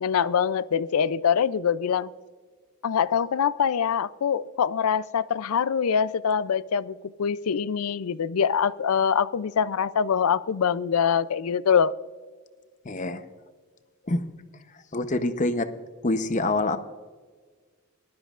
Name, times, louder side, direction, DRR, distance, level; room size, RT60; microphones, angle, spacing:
voice 1, 0.0-2.1 2.8-11.9, left 7 dB, 75° left, 18 dB, 0.4 m, -24 dB
voice 2, 12.8-13.2 14.1-14.2 14.9-15.7 16.0-16.8, left 2 dB, 35° left, 10 dB, 0.8 m, -25 dB
21.0 x 12.5 x 2.5 m, 1.5 s
head